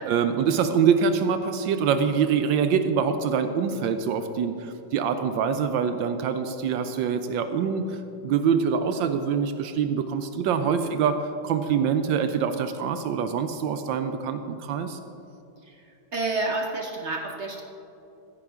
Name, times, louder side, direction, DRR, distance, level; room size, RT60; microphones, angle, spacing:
voice 1, 0.0-11.2 11.4-15.0, right 6 dB, 75° right, 9 dB, 1.2 m, -25 dB
voice 2, 10.6-11.0 15.6-17.6, right 2 dB, 55° right, 1 dB, 0.8 m, -31 dB
15.0 x 10.0 x 3.6 m, 2.8 s
omnidirectional pair, 2.2 m